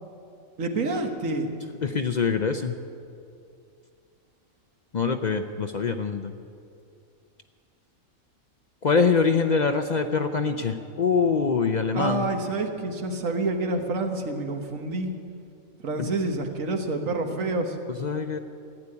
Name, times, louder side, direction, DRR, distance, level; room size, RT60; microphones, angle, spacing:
voice 1, 0.6-1.5 11.9-15.1 15.8-17.8, right 2 dB, 70° right, 5 dB, 1.6 m, -28 dB
voice 2, 1.8-2.8 4.9-6.3 8.8-12.3 16.0-16.1 18.0-18.4, left 5 dB, 55° left, 7 dB, 0.5 m, -24 dB
15.0 x 8.4 x 9.8 m, 2.4 s
omnidirectional pair, 1.4 m